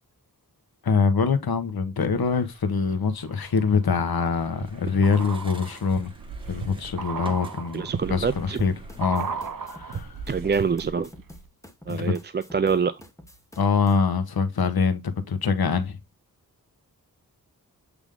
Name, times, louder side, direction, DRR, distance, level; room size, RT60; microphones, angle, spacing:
voice 1, 0.8-6.1 6.5-8.7 9.0-9.3 9.6-10.1 11.9-12.1 13.6-16.0, left 5 dB, 80° left, 1.1 m, -24 dB
sound 1, 2.0-2.7 3.2-11.1 11.3-11.4, right 5 dB, 65° right, 0.9 m, -36 dB
sound 2, 4.0-9.1, right 1 dB, 15° right, 1.3 m, -48 dB
voice 2, 7.7-8.6 10.3-11.1 11.9-13.0, right 5 dB, 30° right, 0.4 m, -25 dB
sound 3, 8.6-14.0, equal, 10° left, 1.2 m, -48 dB
8.2 x 3.5 x 3.6 m
wide cardioid pair, 95°, 36 cm